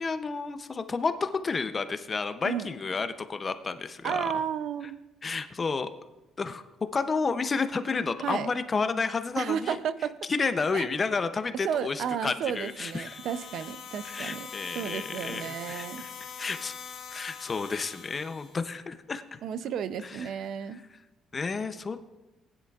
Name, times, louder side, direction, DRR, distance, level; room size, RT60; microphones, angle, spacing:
voice 1, 0.0-4.3 5.2-5.9 6.4-6.6 6.9-9.8 10.3-13.2 14.0-16.7 17.1-19.4 20.0-20.3 20.7-20.8 21.3-22.0, left 4 dB, 25° left, 9 dB, 0.5 m, -31 dB
voice 2, 4.0-5.0 8.2-8.5 9.4-10.2 10.7-10.9 11.6-14.5 14.7-16.0 19.4-20.8, right 8 dB, 60° right, 14 dB, 0.4 m, -32 dB
sound 1, 12.5-18.6, left 7 dB, 50° left, 2.1 m, -43 dB
19.0 x 10.0 x 2.4 m, 1.0 s
cardioid pair, 165°, 0 cm